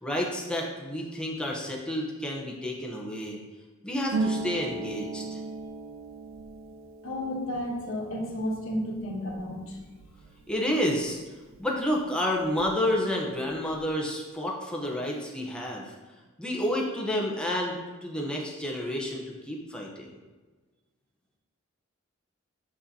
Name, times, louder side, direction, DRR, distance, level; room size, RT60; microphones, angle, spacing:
voice 1, 0.0-3.4 3.8-5.4 10.5-11.2 11.6-15.9 16.4-20.2, left 1 dB, 5° left, -2 dB, 0.9 m, -30 dB
Harp, 4.1-11.6 11.8-13.0 13.2-13.9, right 3 dB, 75° right, 0.5 m, -37 dB
voice 2, 7.0-9.8, equal, 80° left, 0 dB, 1.3 m, -32 dB
6.3 x 6.2 x 2.8 m, 1.3 s
head